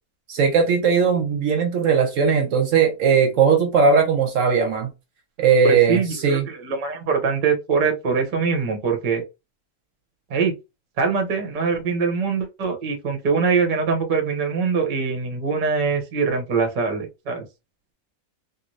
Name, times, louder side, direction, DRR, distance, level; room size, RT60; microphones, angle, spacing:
voice 1, 0.3-4.9 5.4-6.5, right 6 dB, 70° right, 0.9 m, -18 dB
voice 2, 5.6-9.2 10.3-10.5 11.0-17.4, right 5 dB, 40° right, 0.7 m, -23 dB
2.6 x 2.4 x 3.1 m
omnidirectional pair, 1.5 m